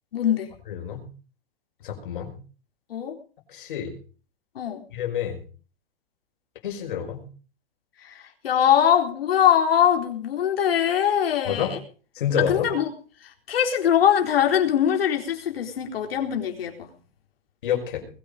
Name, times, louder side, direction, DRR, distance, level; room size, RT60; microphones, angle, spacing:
voice 1, 0.1-0.5 2.9-3.2 4.5-4.8 8.0-11.8 12.5-12.9 13.2-16.9, left 9 dB, 85° left, 3 dB, 4.1 m, -22 dB
voice 2, 0.7-1.1 1.8-2.4 3.5-3.9 4.9-5.4 6.6-7.2 11.4-11.7 12.1-12.7 17.6-18.1, left 8 dB, 60° left, 3 dB, 5.4 m, -28 dB
21.0 x 9.9 x 5.2 m, 0.39 s
supercardioid pair, 180°, 29 cm